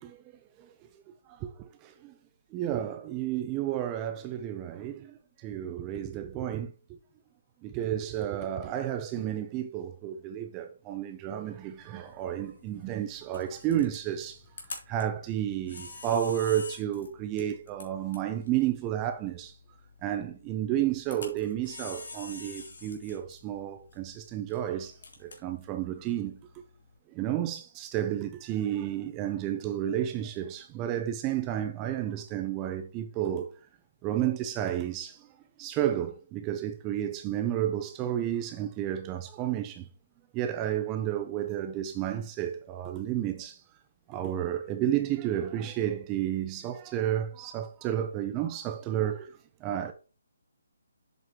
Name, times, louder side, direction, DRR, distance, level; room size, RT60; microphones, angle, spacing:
voice 1, 1.8-2.1 2.5-6.7 7.6-14.4 14.9-19.5 20.0-26.4 27.1-33.5 34.0-35.3 35.6-39.9 40.3-43.6 44.1-49.3 49.6-49.9, right 11 dB, 20° right, 0.6 m, -31 dB
Camera, 11.5-27.0, left 3 dB, 70° left, 3.3 m, -48 dB
7.8 x 7.6 x 3.1 m
hypercardioid pair, 160°, 0 cm